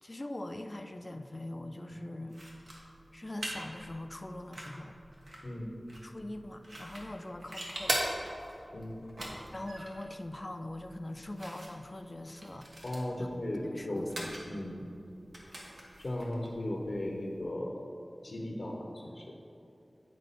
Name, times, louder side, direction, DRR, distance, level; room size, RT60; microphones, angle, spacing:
voice 1, 0.0-2.4 3.1-5.0 6.0-8.0 9.5-12.7 13.2-13.3 13.6-14.7, left 1 dB, 40° left, 7 dB, 0.5 m, -42 dB
sound 1, 2.3-17.4, right 1 dB, 80° right, 1.3 m, -42 dB
voice 2, 5.4-5.8 8.7-9.0 12.8-14.1 14.5-14.8 16.0-17.9 18.2-19.5, left 1 dB, 70° left, -1 dB, 0.9 m, -36 dB
9.8 x 4.5 x 4.1 m, 2.7 s
wide cardioid pair, 40°, 0 cm